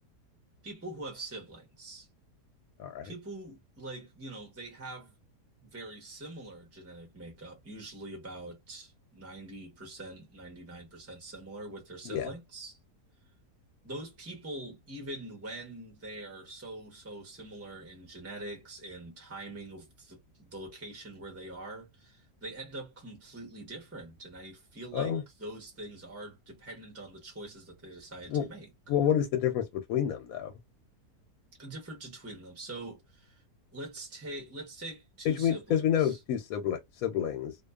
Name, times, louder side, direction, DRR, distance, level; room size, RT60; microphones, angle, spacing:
voice 1, 0.6-2.1 3.0-5.1 5.6-12.8 13.8-25.1 25.4-28.7 31.6-33.4 33.7-36.2, right 2 dB, 15° right, 0.5 m, -44 dB
voice 2, 2.8-3.1 12.0-12.3 24.9-25.2 28.3-28.5 28.9-30.5 35.2-37.6, left 9 dB, 70° left, 0.9 m, -29 dB
2.5 x 2.3 x 2.2 m
omnidirectional pair, 1.7 m